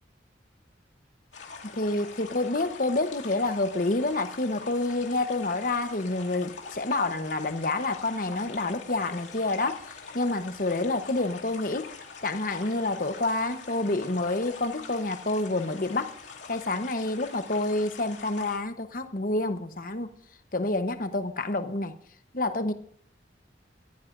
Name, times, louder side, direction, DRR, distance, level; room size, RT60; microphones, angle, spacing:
sound 1, 1.3-18.6, left 5 dB, 90° left, 2.5 m, -44 dB
voice 1, 1.7-9.8 10.1-11.9 12.2-16.1 16.5-20.1 20.5-22.0 22.3-22.7, left 2 dB, 50° left, 1.0 m, -28 dB
24.5 x 15.0 x 2.6 m
head